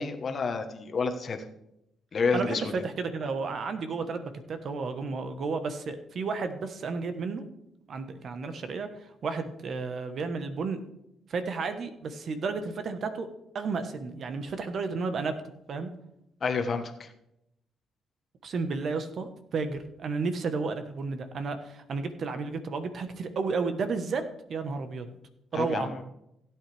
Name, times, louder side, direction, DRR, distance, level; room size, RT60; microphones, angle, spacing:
voice 1, 0.0-1.4 2.1-2.7 16.4-17.1 25.5-26.0, left 4 dB, 45° left, 6 dB, 1.2 m, -29 dB
voice 2, 2.8-7.4 7.9-10.8 11.3-13.3 13.5-15.4 15.7-15.9 18.4-24.2 24.5-25.1 25.5-25.9, right 4 dB, 55° right, 9 dB, 1.2 m, -32 dB
16.0 x 8.9 x 3.4 m, 0.82 s
cardioid pair, 90°, 0 cm